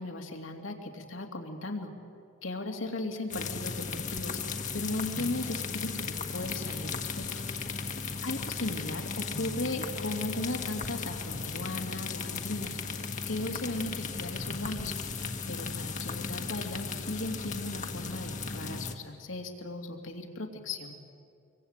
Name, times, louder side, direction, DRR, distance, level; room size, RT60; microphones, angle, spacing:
voice 1, 0.0-1.9 2.4-4.4 4.7-7.4 8.2-12.8 13.2-14.9 15.5-21.0, left 2 dB, 75° left, 3 dB, 2.9 m, -37 dB
sound 1, 3.3-18.9, left 5 dB, 40° left, 1.5 m, -36 dB
25.5 x 23.5 x 9.0 m, 2.5 s
head